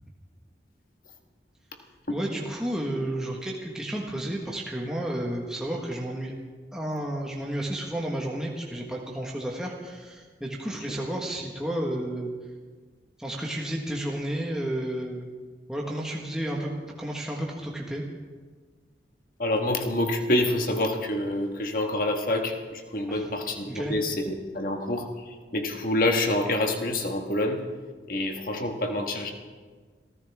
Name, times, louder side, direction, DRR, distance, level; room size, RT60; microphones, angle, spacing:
voice 1, 2.1-6.3 6.7-12.3 13.2-15.3 15.7-18.0 23.1-23.3 23.7-24.0, right 1 dB, 5° right, -2 dB, 1.5 m, -32 dB
voice 2, 19.4-27.6 28.1-29.3, left 1 dB, 50° left, 3 dB, 1.7 m, -27 dB
26.5 x 14.5 x 3.6 m, 1.5 s
head